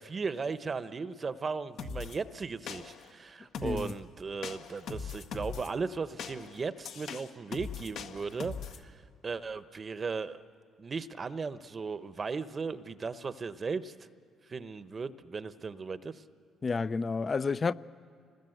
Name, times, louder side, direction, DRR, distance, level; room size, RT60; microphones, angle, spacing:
voice 1, 0.0-10.4 10.8-13.9 14.5-16.2, right 4 dB, 40° right, 1.0 m, -37 dB
sound 1, 1.8-2.2 2.7-3.1 3.5-4.0 4.4-5.7 6.2-8.8, left 5 dB, 70° left, 1.6 m, -40 dB
voice 2, 3.6-3.9 16.6-17.7, left 4 dB, 35° left, 0.7 m, -30 dB
28.0 x 20.0 x 8.0 m
supercardioid pair, 70°, 0 cm